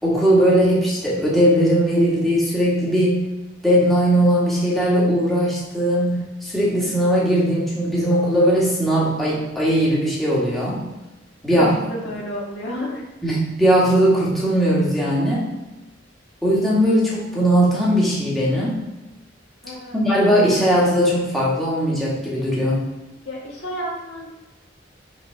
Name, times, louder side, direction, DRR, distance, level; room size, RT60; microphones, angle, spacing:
voice 1, 0.0-3.2 3.6-10.8 11.4-11.7 13.2-15.5 16.4-18.8 19.9-22.8, equal, ahead, -7 dB, 2.1 m, -19 dB
voice 2, 11.5-13.0 19.6-20.0 23.2-24.3, equal, 65° left, -4 dB, 2.2 m, -31 dB
6.3 x 4.1 x 5.9 m, 1.1 s
head